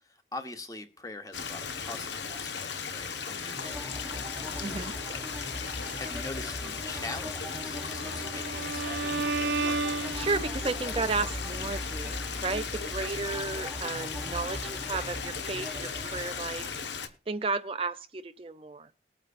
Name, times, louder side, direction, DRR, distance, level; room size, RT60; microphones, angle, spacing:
voice 1, 0.0-10.2, left 2 dB, 20° left, 7 dB, 1.1 m, -44 dB
Stream, 1.3-17.1, left 6 dB, 75° left, 1.2 m, -37 dB
sound 1, 3.4-17.1, equal, 5° right, 1.0 m, -40 dB
voice 2, 4.6-4.9 10.2-16.8 17.3-18.9, right 3 dB, 30° right, 10 dB, 0.5 m, -33 dB
Bowed string instrument, 7.7-10.8, right 3 dB, 80° right, 1.0 m, -33 dB
21.0 x 9.0 x 2.5 m, 0.35 s
head